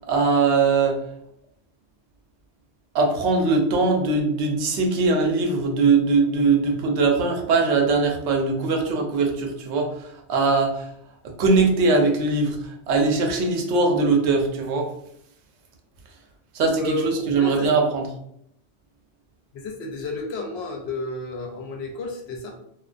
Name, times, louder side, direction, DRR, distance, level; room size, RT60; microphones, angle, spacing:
voice 1, 0.1-1.0 2.9-10.9 11.2-14.9 16.5-18.1, right 3 dB, 80° right, 2 dB, 0.9 m, -21 dB
voice 2, 16.7-17.7 19.5-22.5, left 3 dB, 75° left, 1 dB, 0.8 m, -31 dB
2.3 x 2.2 x 2.4 m, 0.72 s
omnidirectional pair, 1.1 m